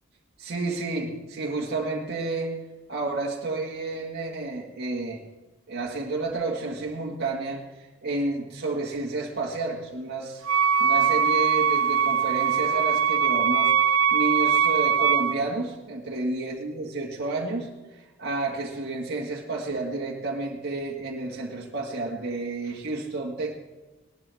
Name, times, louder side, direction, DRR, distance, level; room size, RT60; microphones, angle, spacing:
voice 1, 0.4-2.6 2.9-5.2 5.7-10.4 10.8-13.7 14.1-23.5, right 2 dB, 55° right, -2 dB, 1.8 m, -30 dB
Wind instrument woodwind instrument, 10.4-15.4, right 7 dB, 75° right, 0.4 m, -22 dB
19.5 x 11.5 x 3.5 m, 1.2 s
head